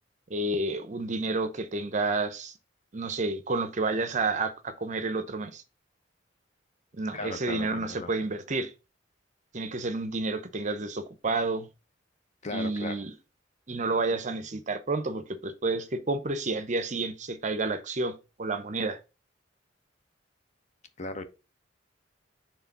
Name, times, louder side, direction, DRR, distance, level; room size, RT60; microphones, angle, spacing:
voice 1, 0.3-2.5 2.9-5.6 6.9-8.7 9.5-11.7 12.5-13.1 13.7-19.0, right 3 dB, 40° right, 0.7 m, -30 dB
voice 2, 7.1-8.3 12.4-13.0 21.0-21.2, left 2 dB, 40° left, 0.8 m, -37 dB
4.8 x 3.6 x 5.4 m
head